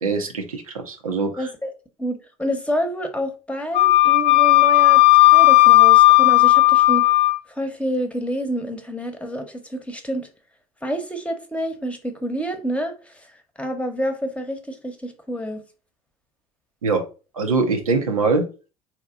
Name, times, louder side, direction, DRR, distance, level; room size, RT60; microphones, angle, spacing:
voice 1, 0.0-1.5 16.8-17.0 17.3-18.5, right 4 dB, 80° right, 0.8 m, -23 dB
voice 2, 1.4-1.7 2.0-7.1 7.5-10.3 10.8-13.3 13.6-15.6, equal, 5° left, 1.0 m, -28 dB
Wind instrument woodwind instrument, 3.7-7.4, left 19 dB, 35° left, 0.4 m, -13 dB
4.4 x 2.8 x 3.7 m
figure-of-eight pair, 65°, 18 cm